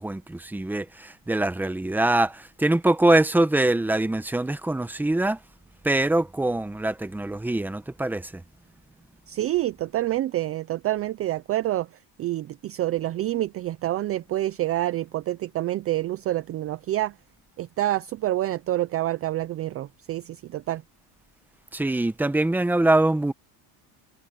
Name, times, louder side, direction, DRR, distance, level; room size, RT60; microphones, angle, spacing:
voice 1, 0.0-5.4 5.8-8.4 21.7-23.3, right 2 dB, 5° right, 0.9 m, -23 dB
voice 2, 9.3-11.9 12.2-17.1 17.6-20.8, right 14 dB, 35° right, 0.4 m, -27 dB
cardioid pair, 150°, 46 cm